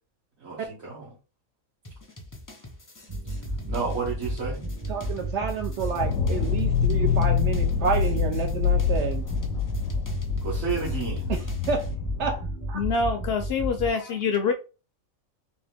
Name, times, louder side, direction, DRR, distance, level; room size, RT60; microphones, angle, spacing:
voice 1, 0.4-1.0 3.7-4.6 10.4-11.3, right 5 dB, 85° right, 1.8 m, -31 dB
sound 1, 1.8-11.9, left 2 dB, 25° left, 0.5 m, -46 dB
sound 2, 3.1-13.9, right 1 dB, 25° right, 0.8 m, -32 dB
voice 2, 4.9-9.3 11.3-11.9 12.2-12.8, right 5 dB, 65° right, 0.8 m, -29 dB
sound 3, 6.0-12.4, left 7 dB, 80° left, 1.0 m, -26 dB
voice 3, 12.7-14.5, left 5 dB, 65° left, 0.6 m, -25 dB
3.5 x 3.1 x 3.4 m
omnidirectional pair, 1.4 m